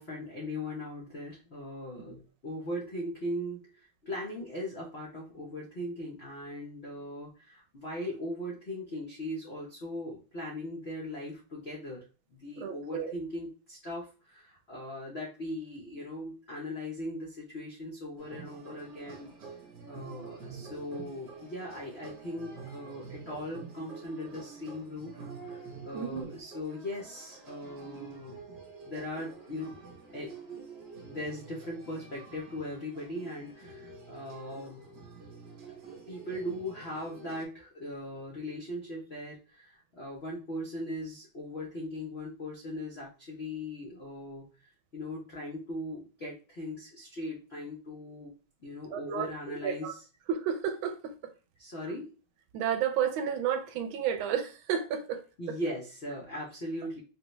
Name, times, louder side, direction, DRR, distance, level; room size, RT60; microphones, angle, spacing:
voice 1, 0.0-12.0 12.3-19.3 19.9-28.4 28.8-29.8 30.1-30.3 31.0-34.8 36.1-44.5 44.9-48.3 48.6-50.0 51.6-52.1 55.4-57.0, left 1 dB, 85° left, 0.5 m, -39 dB
voice 2, 12.6-13.1 25.9-26.3 48.9-49.9 50.3-51.3 52.5-55.6, right 8 dB, 80° right, 1.3 m, -32 dB
sound 1, 18.2-37.4, right 5 dB, 55° right, 1.2 m, -48 dB
3.9 x 2.2 x 2.9 m
omnidirectional pair, 2.3 m